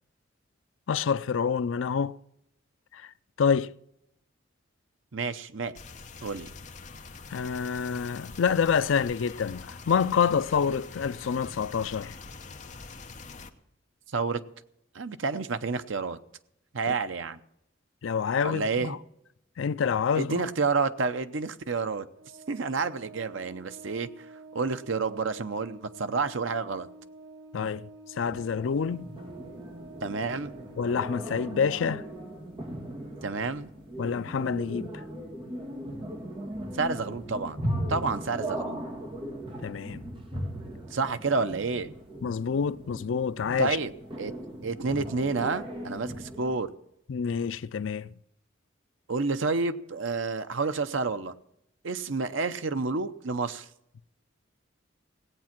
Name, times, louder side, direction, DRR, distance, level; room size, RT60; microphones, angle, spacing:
voice 1, 0.9-2.2 2.9-3.1 3.4-3.7 7.3-12.1 16.9-17.0 18.0-19.0 19.6-20.4 27.5-27.9 28.2-29.0 30.8-32.0 34.0-34.9 39.6-40.0 42.2-43.8 47.1-48.1, left 6 dB, 80° left, 0.4 m, -27 dB
voice 2, 5.1-5.8 6.2-6.5 14.1-14.4 14.9-16.2 16.7-17.4 18.4-19.0 20.1-22.1 22.5-24.3 24.5-26.9 28.9-29.0 30.0-30.5 33.2-33.7 36.7-37.6 37.9-38.9 40.9-41.9 43.6-43.9 44.2-44.3 44.6-46.7 49.1-51.3 51.8-53.7, right 4 dB, 80° right, 0.8 m, -29 dB
sound 1, 5.8-13.5, left 4 dB, 40° left, 0.9 m, -44 dB
Organ, 22.1-32.8, right 2 dB, 60° right, 1.4 m, -49 dB
sound 2, 28.2-46.6, equal, 25° right, 2.3 m, -38 dB
17.0 x 8.5 x 5.9 m
head